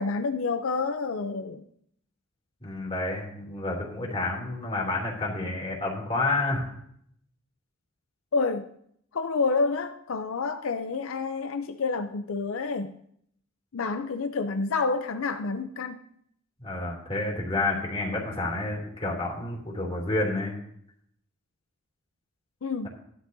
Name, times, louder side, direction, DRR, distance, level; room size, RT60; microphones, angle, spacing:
voice 1, 0.0-1.7 8.3-8.7 9.1-12.9 13.7-16.0 22.6-22.9, left 4 dB, 75° left, 0.6 m, -28 dB
voice 2, 2.6-6.7 16.6-20.5, left 2 dB, 25° left, 2.9 m, -29 dB
15.0 x 12.0 x 2.7 m
head